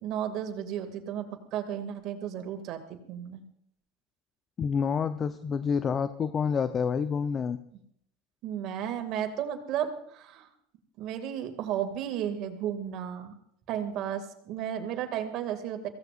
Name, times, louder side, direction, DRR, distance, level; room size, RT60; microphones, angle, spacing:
voice 1, 0.0-3.4 8.4-10.5 11.0-13.3 13.7-15.9, right 9 dB, 55° right, 6 dB, 2.3 m, -33 dB
voice 2, 4.6-7.6, left 6 dB, 35° left, 12 dB, 0.7 m, -28 dB
24.0 x 16.5 x 2.5 m, 0.71 s
hypercardioid pair, 90°, 0 cm